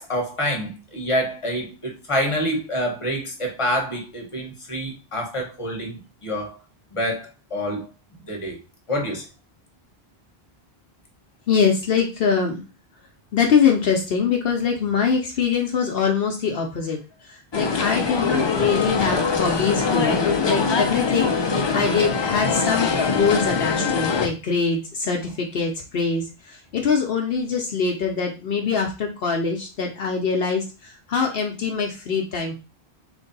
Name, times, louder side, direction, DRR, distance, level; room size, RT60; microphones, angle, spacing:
voice 1, 0.0-6.6 6.9-7.9 8.2-8.6 8.9-9.2, equal, 30° left, 1.1 m, -27 dB
voice 2, 11.5-12.6 13.3-17.0 17.3-32.6, left 5 dB, 65° left, 0.8 m, -23 dB
sound 1, 17.5-24.3, left 4 dB, 45° left, 0.3 m, -23 dB
3.2 x 2.6 x 3.9 m
omnidirectional pair, 1.1 m